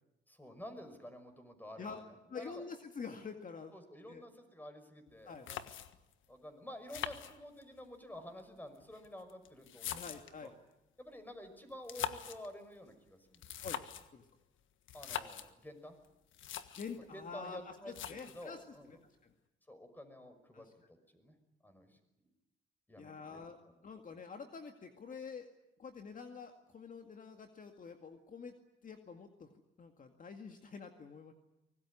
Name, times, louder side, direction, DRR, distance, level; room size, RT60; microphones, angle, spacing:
voice 1, 0.3-2.0 2.3-2.6 3.7-5.6 6.3-10.1 10.4-10.5 11.0-13.4 14.9-15.9 17.1-19.0 19.7-20.7 21.1-21.3 21.6-22.3 22.9-23.4, left 1 dB, 10° left, 8 dB, 5.7 m, -50 dB
voice 2, 2.3-3.7 4.1-4.2 5.3-5.5 9.9-10.5 13.6-13.8 14.1-14.3 16.7-19.0 19.2-19.3 20.5-20.7 23.0-23.6 23.8-25.5 25.8-28.6 28.8-31.3, left 5 dB, 45° left, 5 dB, 2.1 m, -47 dB
sound 1, 5.1-5.2 5.5-6.1 6.9-7.9 8.8-10.5 11.7-12.5 13.3-14.1 14.9-15.5 16.0-16.1 16.3-17.0 17.9-18.5, left 10 dB, 75° left, 1.6 m, -43 dB
24.0 x 19.5 x 10.0 m, 0.94 s
cardioid pair, 90°, 20 cm